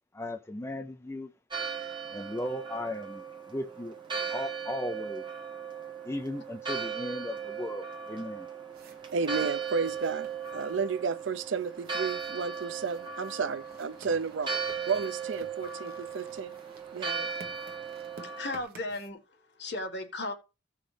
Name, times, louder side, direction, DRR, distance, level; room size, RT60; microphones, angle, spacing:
voice 1, 0.1-1.3 2.1-3.2 3.5-4.0 4.3-5.2 6.0-8.5, left 1 dB, 15° left, 0.5 m, -36 dB
Church bell, 1.5-18.6, right 6 dB, 25° right, 1.8 m, -37 dB
sound 1, 8.7-19.1, right 3 dB, 50° right, 1.3 m, -54 dB
voice 2, 9.1-14.6 14.9-16.5 16.9-17.3, right 5 dB, 75° right, 0.6 m, -32 dB
voice 3, 18.2-20.3, left 2 dB, 60° left, 1.7 m, -36 dB
15.5 x 5.7 x 3.4 m
head